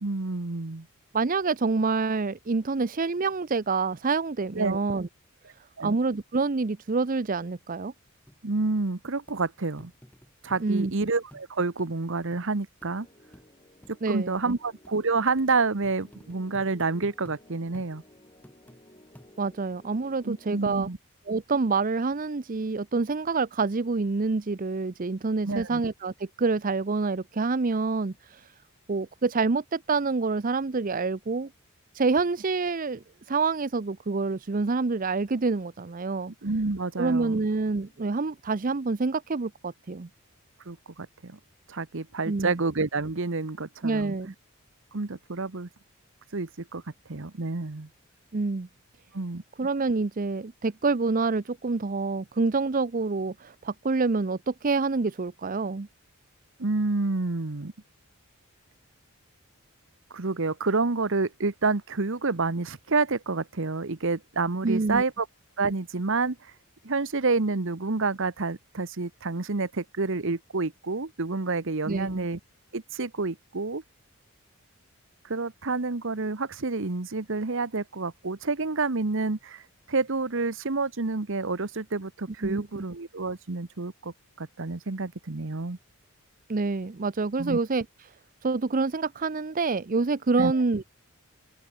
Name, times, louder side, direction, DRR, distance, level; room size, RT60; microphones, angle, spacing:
voice 1, 0.0-0.9 4.5-4.8 5.8-6.0 8.4-9.9 10.4-13.1 13.9-18.0 20.2-21.0 25.4-25.8 36.4-37.4 40.7-41.4 41.7-44.1 44.9-45.7 46.3-46.8 47.1-47.9 49.1-49.4 56.6-57.7 60.1-65.3 65.6-66.4 66.8-72.4 72.7-73.8 75.3-79.6 79.9-85.8 87.4-87.6 90.4-90.5, right 3 dB, 60° right, 1.1 m, -29 dB
voice 2, 1.1-5.1 5.8-7.9 10.6-10.9 14.0-14.6 19.4-20.9 21.3-28.5 28.9-31.5 31.9-36.3 37.0-40.1 42.3-42.6 43.8-44.3 48.3-48.7 49.6-55.9 64.6-65.0 71.9-72.3 82.4-82.8 86.5-87.8 88.4-90.8, right 4 dB, 40° right, 0.6 m, -27 dB
sound 1, 8.3-8.4 8.8-8.9 9.3-9.4 9.8-10.9 11.3-11.5 11.8-11.9 12.3-12.4 12.8-13.0 13.3-13.5 13.8-14.0 14.4-14.5 14.8-15.0 15.4-15.5 15.8-17.4 17.7-17.9 18.4-18.8 19.2-19.6 20.1-20.2, equal, 5° left, 4.1 m, -51 dB
sound 2, 12.8-20.7, left 1 dB, 25° left, 4.3 m, -56 dB
open air
head